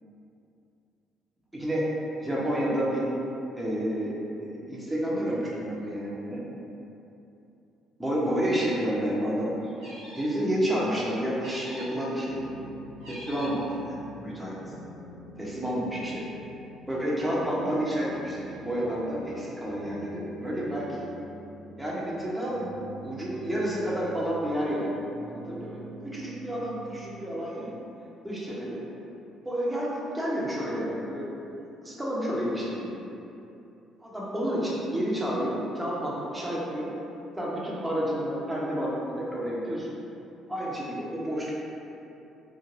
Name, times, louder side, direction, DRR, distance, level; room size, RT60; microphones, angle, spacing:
voice 1, 1.5-1.8 2.2-3.1 3.6-4.1 4.4-6.4 8.0-9.7 10.1-12.4 13.1-14.5 15.4-16.2 16.9-21.1 21.8-22.7 23.0-25.0 25.2-27.7 28.2-28.8 29.4-31.5 31.8-33.0 34.0-36.9 37.4-39.9 40.5-41.5, equal, 15° right, -6 dB, 0.8 m, -30 dB
sound 1, 9.8-10.4 11.4-12.1 13.0-13.7, equal, 80° right, 1.1 m, -43 dB
sound 2, 12.2-14.3 14.6-16.9 17.2-19.5 19.8-22.2 22.5-24.8 25.1-27.4, right 1 dB, 50° right, 0.3 m, -46 dB
2.5 x 2.1 x 3.2 m, 2.8 s
hypercardioid pair, 50°, 0 cm